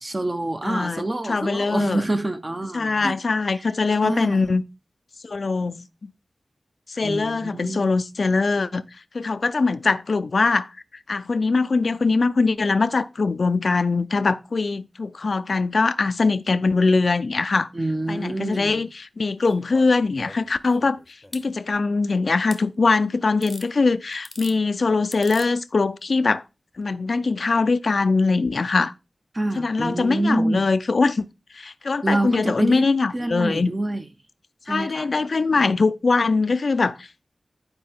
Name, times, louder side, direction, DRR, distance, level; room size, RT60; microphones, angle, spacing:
voice 1, 0.0-3.2 3.4-3.7 4.0-4.4 7.0-7.9 17.7-18.8 29.3-30.7 32.0-32.9 33.1-34.1 34.7-35.7, right 1 dB, 30° right, 0.9 m, -27 dB
voice 2, 0.6-1.0 1.3-2.0 2.7-4.6 5.2-6.1 6.9-8.8 9.1-10.7 11.1-17.7 18.1-21.0 21.3-26.4 26.8-28.9 29.6-31.3 31.5-33.7 34.7-37.0, left 3 dB, 65° left, 0.5 m, -22 dB
sound 1, 19.4-21.5 22.5-22.6 23.4-23.7 24.1-24.6 25.1-25.5 26.7-26.8, left 1 dB, 10° left, 0.9 m, -42 dB
10.5 x 4.8 x 3.6 m
wide cardioid pair, 100°, 0 cm